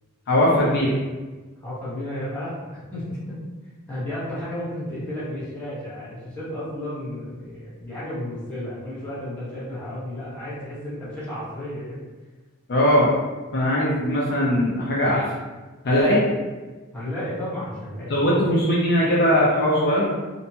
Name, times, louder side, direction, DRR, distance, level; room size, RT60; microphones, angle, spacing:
voice 1, 0.3-0.9 12.7-13.1 13.5-15.2 15.8-16.2 18.1-20.1, left 1 dB, 50° left, -5 dB, 0.5 m, -20 dB
voice 2, 1.6-3.4 3.9-12.0 16.9-18.3, left 1 dB, 10° left, -11 dB, 1.0 m, -33 dB
2.6 x 2.2 x 2.7 m, 1.3 s
head